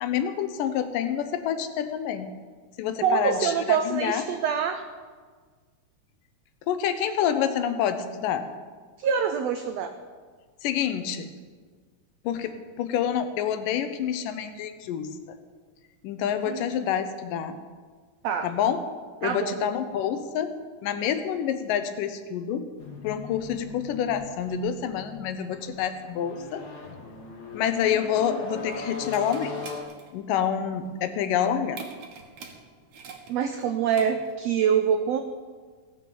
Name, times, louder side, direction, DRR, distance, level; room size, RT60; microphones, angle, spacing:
voice 1, 0.0-2.4 2.8-4.2 6.7-8.5 10.6-11.3 12.2-15.4 16.0-17.6 18.4-18.8 19.2-20.5 20.8-22.7 23.0-26.7 27.5-29.6 30.1-31.8, left 9 dB, 80° left, 9 dB, 2.5 m, -27 dB
voice 2, 3.0-4.8 9.0-9.9 16.4-16.7 18.2-18.5 19.2-19.6 33.3-35.2, right 7 dB, 85° right, 7 dB, 1.4 m, -25 dB
sound 1, 22.8-29.8, left 4 dB, 50° left, 1.2 m, -40 dB
sound 2, 28.0-34.5, right 5 dB, 65° right, 2.4 m, -45 dB
16.5 x 7.5 x 7.1 m, 1.5 s
omnidirectional pair, 3.8 m